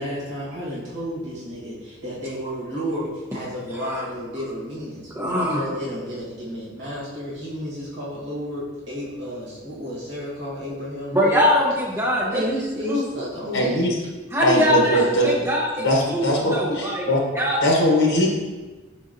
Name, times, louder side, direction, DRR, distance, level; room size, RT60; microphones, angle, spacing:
voice 1, 0.0-11.5 12.3-13.8, equal, 60° right, -8 dB, 1.3 m, -31 dB
voice 2, 3.7-4.0 5.1-5.7 11.1-12.5 12.9-13.2 14.3-17.1 17.3-17.6, left 1 dB, 15° right, -5 dB, 0.8 m, -23 dB
voice 3, 13.5-13.9 14.4-15.3 15.8-17.2 17.6-18.3, equal, 75° left, -2 dB, 1.0 m, -20 dB
4.9 x 3.9 x 2.6 m, 1.2 s
head